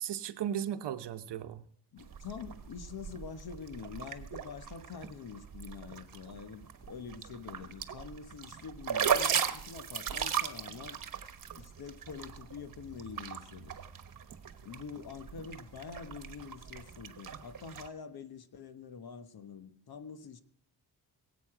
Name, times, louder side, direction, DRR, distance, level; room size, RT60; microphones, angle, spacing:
voice 1, 0.0-1.6, right 10 dB, 85° right, 0.9 m, -36 dB
voice 2, 1.9-11.0 11.6-13.7 14.6-20.4, left 6 dB, 65° left, 1.2 m, -46 dB
sound 1, 2.0-17.9, right 7 dB, 50° right, 1.2 m, -38 dB
21.5 x 8.5 x 4.9 m
wide cardioid pair, 110°, 40 cm